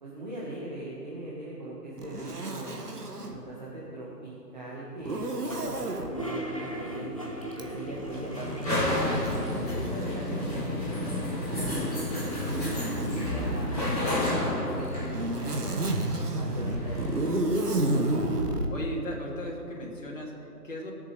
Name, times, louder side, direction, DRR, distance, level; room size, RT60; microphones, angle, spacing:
voice 1, 0.0-3.0 3.3-7.1 7.6-9.0 9.3-12.6 13.1-15.9 16.4-17.3, right 1 dB, 25° right, -6 dB, 1.8 m, -40 dB
Zipper (clothing), 2.0-3.4 5.0-6.1 7.5-10.7 11.5-13.8 14.7-18.7, right 1 dB, 65° right, 1.8 m, -32 dB
Toilet flush, 5.4-9.8 10.1-10.2 10.4-11.2 11.7-14.6, right 1 dB, 20° left, 0.9 m, -40 dB
sound 1, 6.7-17.3, left 1 dB, 5° left, 1.4 m, -32 dB
voice 2, 18.7-20.9, equal, 50° left, -3 dB, 2.9 m, -37 dB
17.0 x 8.2 x 6.8 m, 2.9 s
figure-of-eight pair, 165°, 49 cm